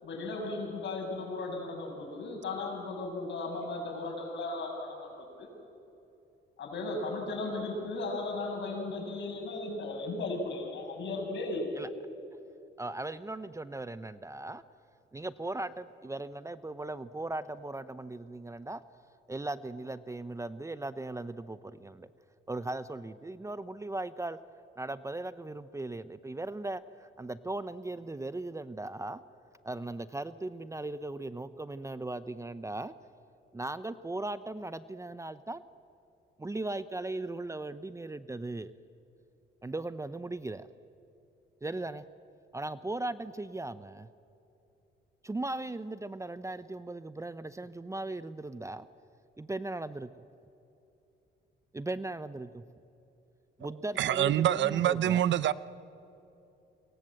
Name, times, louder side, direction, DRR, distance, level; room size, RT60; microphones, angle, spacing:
voice 1, 0.0-5.5 6.6-11.9, left 2 dB, 65° left, 7.5 m, -36 dB
voice 2, 12.8-14.6 15.1-18.8 19.3-22.1 22.5-24.4 24.8-29.2 29.6-32.9 33.5-35.6 36.4-38.7 39.6-40.7 41.6-42.0 42.5-44.1 45.2-48.9 49.4-50.1 51.7-52.6 53.6-55.2, right 2 dB, 15° right, 0.7 m, -38 dB
voice 3, 54.0-55.5, right 11 dB, 65° right, 0.8 m, -26 dB
29.0 x 23.0 x 7.7 m
cardioid pair, 90°, 20 cm